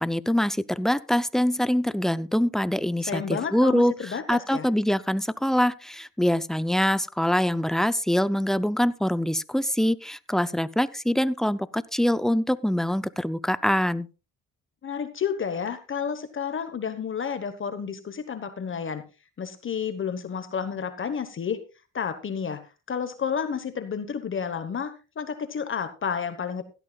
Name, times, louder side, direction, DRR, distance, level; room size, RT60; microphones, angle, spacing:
voice 1, 0.0-14.1, equal, ahead, 15 dB, 0.5 m, -24 dB
voice 2, 3.1-4.7 14.8-19.0 19.4-21.6 21.9-22.6 22.9-26.6, left 7 dB, 40° left, 10 dB, 1.2 m, -31 dB
16.5 x 12.0 x 2.4 m, 0.32 s
cardioid pair, 90°, 30 cm